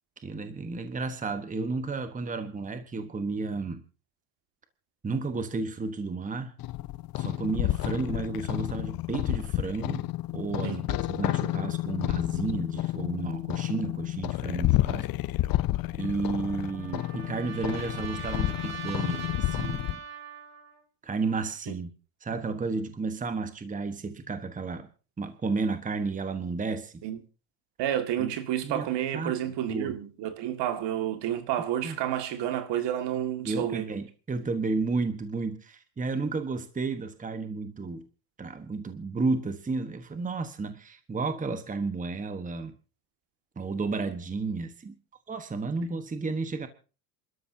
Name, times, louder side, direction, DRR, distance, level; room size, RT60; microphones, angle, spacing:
voice 1, 0.2-3.8 5.0-6.5 7.2-10.1 10.3-15.1 16.0-20.0 21.0-21.9 22.2-24.9 25.2-27.0 28.2-28.3 28.6-28.9 29.1-29.4 29.7-29.9 31.8-32.0 33.4-38.1 38.4-42.7 43.6-45.0 45.3-46.7, right 4 dB, 15° right, 1.3 m, -32 dB
sound 1, 6.6-20.0, left 17 dB, 45° left, 0.7 m, -30 dB
Trumpet, 16.0-20.8, right 7 dB, 30° right, 3.1 m, -42 dB
voice 2, 27.8-33.9, right 11 dB, 60° right, 2.1 m, -30 dB
27.0 x 13.0 x 2.8 m
supercardioid pair, 105°, 49 cm